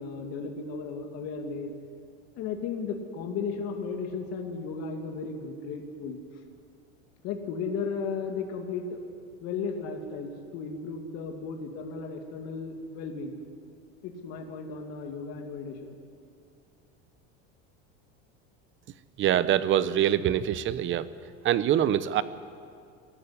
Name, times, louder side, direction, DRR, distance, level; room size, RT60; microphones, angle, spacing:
voice 1, 0.0-1.7 2.4-6.2 7.2-9.0 9.4-13.4 14.0-16.0, left 5 dB, 55° left, 2 dB, 2.4 m, -35 dB
voice 2, 19.2-21.1 21.4-22.2, right 11 dB, 40° right, 15 dB, 0.9 m, -24 dB
23.0 x 14.0 x 9.7 m, 2.3 s
supercardioid pair, 135°, 31 cm